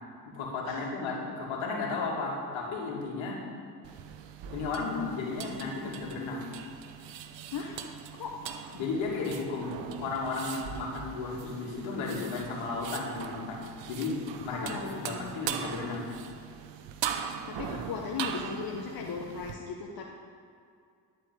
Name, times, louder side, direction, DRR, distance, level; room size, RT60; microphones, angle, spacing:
voice 1, 0.3-3.4 4.5-6.5 8.7-13.6 13.9-16.1 17.7-17.8, left 3 dB, 70° left, -2 dB, 2.6 m, -34 dB
sound 1, 3.8-19.5, right 8 dB, 65° right, 0.9 m, -40 dB
voice 2, 7.5-7.8 8.1-8.3 14.5-15.4 17.5-20.1, left 5 dB, 45° left, 0 dB, 1.2 m, -37 dB
11.0 x 4.8 x 8.2 m, 2.4 s
hypercardioid pair, 55°, 48 cm